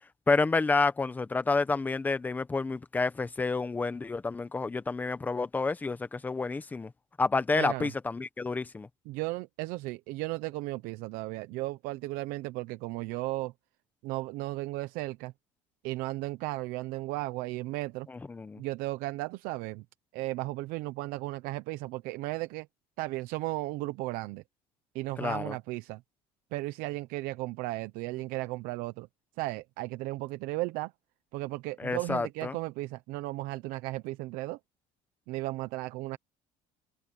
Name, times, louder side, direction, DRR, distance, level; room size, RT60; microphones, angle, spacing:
voice 1, 0.3-6.9 7.2-8.9 18.1-18.6 25.2-25.6 31.8-32.6, left 3 dB, 10° left, 0.9 m, -29 dB
voice 2, 7.5-7.9 9.1-13.5 14.0-15.3 15.8-18.1 18.6-19.8 20.1-22.7 23.0-24.4 24.9-26.0 26.5-29.1 29.4-30.9 31.3-34.6 35.3-36.2, right 19 dB, 75° right, 0.8 m, -35 dB
cardioid pair, 170°, 15 cm